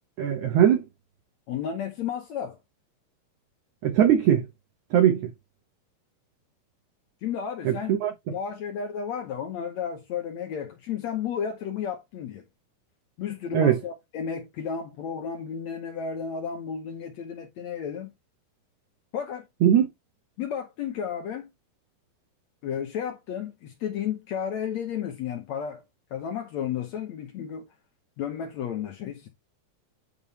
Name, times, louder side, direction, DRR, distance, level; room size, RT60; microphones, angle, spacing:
voice 1, 0.2-0.8 3.8-4.4 4.9-5.3 7.7-8.1 13.5-13.8 19.6-19.9, right 10 dB, 65° right, 2.1 m, -20 dB
voice 2, 1.5-2.6 7.2-8.0 8.3-12.4 13.2-18.1 19.1-19.5 20.4-21.5 22.6-25.8 26.1-27.6 28.2-29.3, left 7 dB, 70° left, 1.7 m, -32 dB
10.0 x 3.6 x 4.3 m
omnidirectional pair, 4.5 m